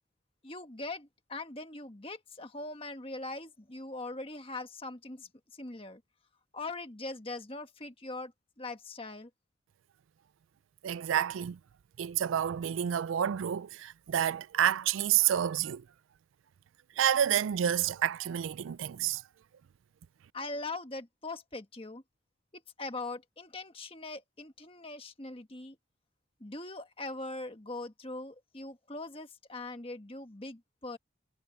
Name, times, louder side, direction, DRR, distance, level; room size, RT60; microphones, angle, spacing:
voice 1, 0.4-5.3 5.6-6.0 6.5-8.3 8.6-9.3 20.3-22.0 22.8-25.8 26.4-31.0, left 2 dB, 25° left, 1.5 m, -41 dB
voice 2, 10.8-11.6 12.0-15.8 17.0-19.2, right 10 dB, 70° right, 0.3 m, -29 dB
head